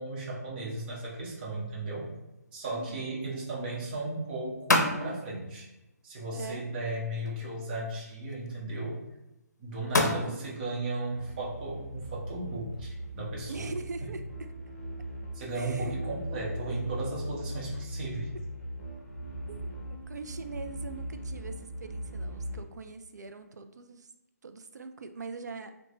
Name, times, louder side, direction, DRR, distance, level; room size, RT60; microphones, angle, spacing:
voice 1, 0.0-2.1 2.5-5.7 6.0-9.0 9.6-13.7 15.3-18.3, right 2 dB, 30° right, -5 dB, 0.9 m, -35 dB
sound 1, 0.7-13.5, left 2 dB, 80° left, 0.5 m, -36 dB
voice 2, 2.7-3.1 6.3-6.6 10.3-10.4 13.5-14.5 15.5-16.0 18.2-18.3 19.5-24.1 24.4-25.7, right 4 dB, 80° right, 8 dB, 0.4 m, -42 dB
sound 2, 11.1-22.6, equal, 45° left, 0.7 m, -39 dB
3.1 x 2.2 x 3.8 m, 0.98 s
hypercardioid pair, 150°, 9 cm